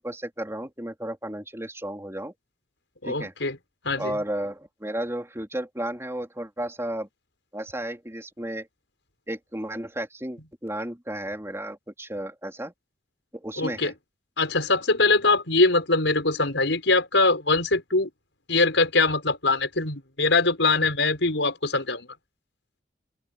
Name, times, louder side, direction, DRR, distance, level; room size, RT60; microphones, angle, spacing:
voice 1, 0.0-2.3 3.1-3.3 4.0-7.1 7.5-8.7 9.3-12.7 13.3-13.9, right 1 dB, 15° right, 3.9 m, -33 dB
voice 2, 3.0-3.6 3.8-4.2 13.6-13.9 14.4-18.1 18.5-22.1, left 3 dB, 80° left, 5.5 m, -22 dB
open air
head